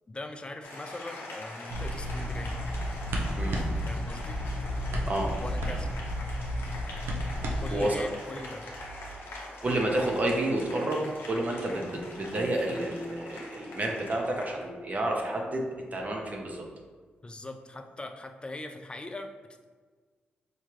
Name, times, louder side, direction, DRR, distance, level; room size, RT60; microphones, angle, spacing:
voice 1, 0.1-2.6 3.8-4.4 5.4-5.9 7.6-8.7 17.2-19.3, left 2 dB, 25° left, 6 dB, 0.4 m, -41 dB
Applause, 0.6-14.6, left 2 dB, 75° left, 0.8 m, -43 dB
sound 1, 1.7-7.7, equal, 85° right, 0.5 m, -32 dB
voice 2, 7.7-8.1 9.6-16.6, right 1 dB, 40° right, 0 dB, 0.7 m, -30 dB
4.4 x 2.4 x 3.1 m, 1.5 s
cardioid pair, 55°, 4 cm